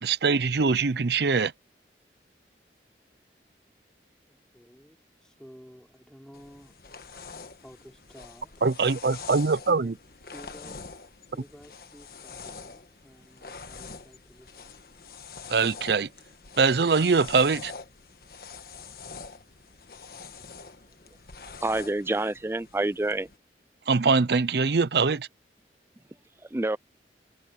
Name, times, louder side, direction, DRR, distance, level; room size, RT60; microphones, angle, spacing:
voice 1, 0.0-1.5 8.6-9.9 15.5-16.1 16.6-17.7 23.9-25.3, right 4 dB, 70° right, 0.6 m, -23 dB
voice 2, 4.3-6.8 7.6-8.5 9.7-10.0 10.3-10.8 11.3-14.8, equal, 5° left, 4.8 m, -51 dB
sound 1, 6.3-23.4, left 5 dB, 55° left, 1.4 m, -45 dB
voice 3, 21.6-23.3 26.5-26.8, right 2 dB, 15° right, 0.4 m, -27 dB
head